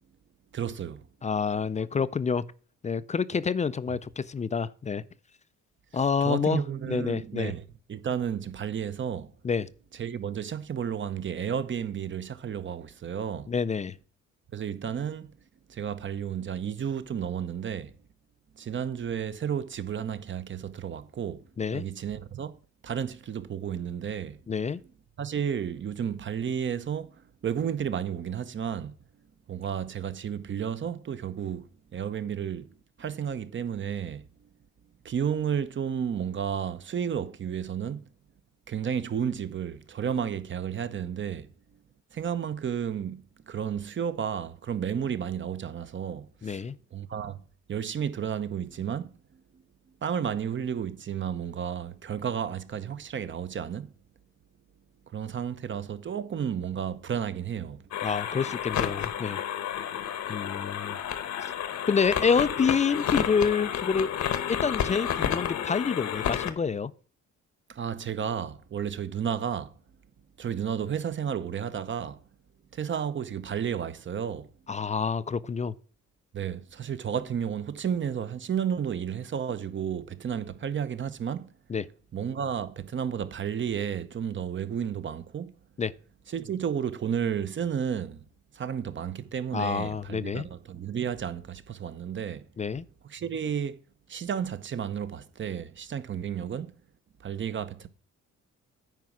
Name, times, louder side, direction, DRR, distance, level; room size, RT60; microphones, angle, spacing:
voice 1, 0.5-1.1 6.2-7.6 7.9-9.3 10.0-13.5 14.5-15.3 15.7-17.9 18.6-22.5 22.8-24.4 25.2-28.9 29.5-31.7 31.9-32.7 33.0-34.3 35.0-38.0 38.7-41.5 42.1-46.6 46.9-47.4 47.7-49.1 50.0-53.9 55.1-57.8 67.7-69.7 70.4-72.2 72.7-74.5 76.3-81.5 82.1-85.5 86.3-88.2 88.5-92.5 93.1-93.8 94.1-96.7 97.2-97.9, right 8 dB, 40° right, 0.8 m, -32 dB
voice 2, 1.2-2.4 2.8-5.0 5.9-7.5 9.4-9.7 13.5-13.9 21.6-21.8 24.5-24.8 46.4-46.8 58.0-59.4 60.3-61.0 61.9-64.1 64.5-66.9 74.7-75.7 81.7-81.9 85.8-85.9 89.5-90.5 92.6-92.8, left 5 dB, 25° left, 0.4 m, -27 dB
sound 1, 57.9-66.5, left 9 dB, 70° left, 1.1 m, -31 dB
9.2 x 4.8 x 6.1 m
cardioid pair, 90°, 30 cm